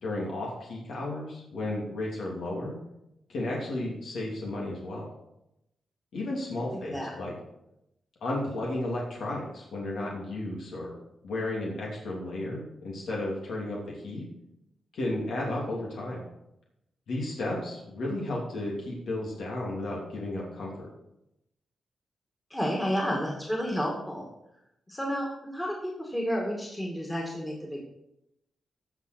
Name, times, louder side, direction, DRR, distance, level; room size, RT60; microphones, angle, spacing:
voice 1, 0.0-2.7 3.3-5.1 6.1-7.3 8.2-11.0 11.2-14.2 14.9-16.2 17.1-20.7, left 1 dB, 80° left, -3 dB, 2.9 m, -33 dB
voice 2, 6.5-7.1 22.5-24.3 24.9-27.8, equal, 10° left, -1 dB, 2.2 m, -31 dB
16.0 x 5.9 x 4.5 m, 0.84 s
wide cardioid pair, 120°, 0 cm